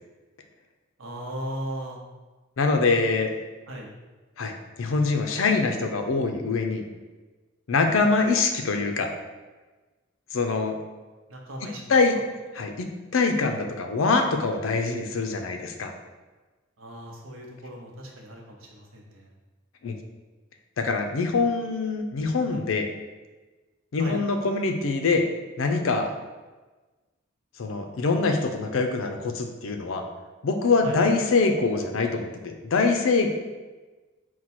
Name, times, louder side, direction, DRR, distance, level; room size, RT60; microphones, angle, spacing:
voice 1, 1.0-2.0 3.7-3.9 11.3-11.8 12.1-12.2 16.8-19.3 24.0-24.2 30.8-31.0, right 1 dB, 80° right, -1 dB, 0.8 m, -37 dB
voice 2, 2.6-3.3 4.4-6.8 7.7-9.1 10.3-10.8 11.9-12.1 12.6-12.9 13.1-15.9 19.8-20.0 20.8-22.9 23.9-25.2 25.6-26.1 27.6-30.0 30.4-33.3, left 4 dB, 75° left, 5 dB, 0.5 m, -24 dB
4.5 x 2.2 x 4.2 m, 1.2 s
head